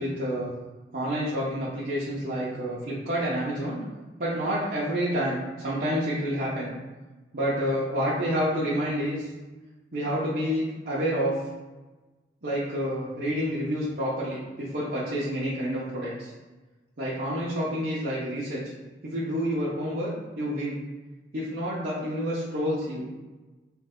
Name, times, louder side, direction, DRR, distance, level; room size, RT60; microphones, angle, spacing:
voice 1, 0.0-0.5 0.9-3.8 4.2-6.7 7.3-9.3 9.9-11.4 12.4-16.3 17.0-18.6 19.0-20.1 20.4-20.8 21.3-23.1, equal, 50° right, -9 dB, 0.8 m, -28 dB
3.3 x 3.2 x 3.7 m, 1.2 s
head